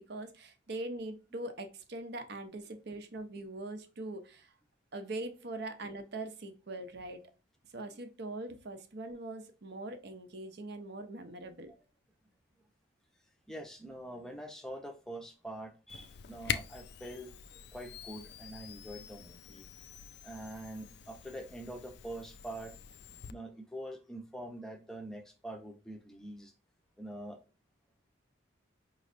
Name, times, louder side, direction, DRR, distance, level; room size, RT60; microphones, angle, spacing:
voice 1, 0.0-4.5 4.9-7.2 7.7-11.7, right 2 dB, 55° right, 8 dB, 0.7 m, -42 dB
voice 2, 13.5-19.6 20.2-22.7 23.3-26.5 27.0-27.4, right 1 dB, ahead, 3 dB, 0.6 m, -45 dB
Camera, 15.9-23.3, left 8 dB, 55° left, 0.4 m, -44 dB
5.2 x 3.1 x 2.5 m, 0.33 s
head